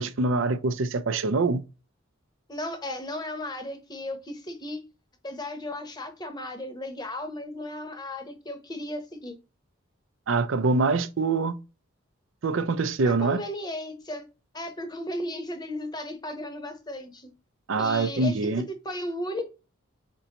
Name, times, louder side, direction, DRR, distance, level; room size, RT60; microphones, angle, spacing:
voice 1, 0.0-1.6 10.3-11.6 12.4-13.4 17.7-18.6, right 3 dB, 70° right, 0.5 m, -24 dB
voice 2, 2.5-4.8 5.2-9.4 13.0-14.2 14.5-17.3 17.8-18.5 18.8-19.5, left 1 dB, 20° left, 0.8 m, -35 dB
4.5 x 3.8 x 2.9 m
head